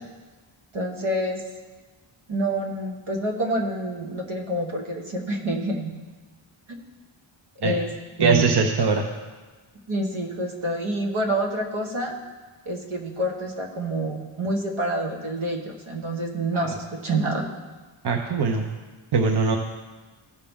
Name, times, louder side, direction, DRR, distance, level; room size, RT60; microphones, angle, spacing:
voice 1, 0.7-1.4 2.3-5.9 7.6-8.7 9.9-12.2 12.6-17.4, right 1 dB, 75° right, 1 dB, 1.5 m, -27 dB
voice 2, 8.2-9.0 16.5-16.7 18.0-18.7 19.1-19.6, right 4 dB, 55° right, 3 dB, 0.8 m, -21 dB
16.0 x 5.7 x 3.6 m, 1.3 s
wide cardioid pair, 120°, 50 cm